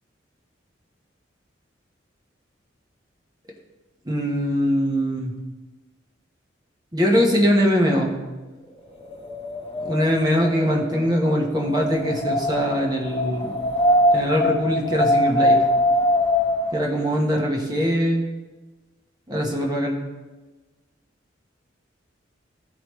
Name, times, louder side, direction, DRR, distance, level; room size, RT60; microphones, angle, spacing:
voice 1, 4.1-5.3 6.9-8.2 9.8-13.6 14.1-15.6 16.7-18.2 19.3-20.0, equal, 20° right, 0 dB, 1.1 m, -22 dB
Wind, 8.9-16.9, left 1 dB, 30° left, 1.0 m, -23 dB
14.5 x 5.0 x 3.1 m, 1.2 s
head